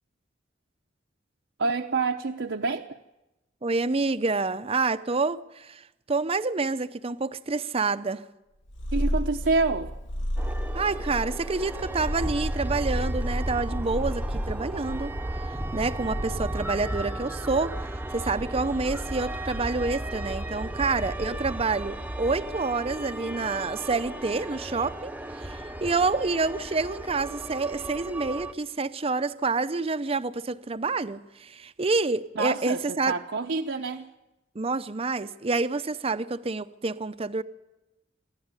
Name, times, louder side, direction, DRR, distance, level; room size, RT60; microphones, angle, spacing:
voice 1, 1.6-3.0 8.9-9.9 32.4-34.1, right 3 dB, 70° right, 0.8 m, -27 dB
voice 2, 3.6-8.2 10.7-15.1 15.4-17.9 18.1-25.1 25.4-33.1 34.5-37.4, right 3 dB, 30° right, 0.6 m, -28 dB
Purr, 8.7-16.8, equal, 80° left, 1.4 m, -33 dB
sound 1, 10.4-28.5, right 1 dB, 10° right, 0.9 m, -34 dB
25.0 x 12.0 x 9.7 m
head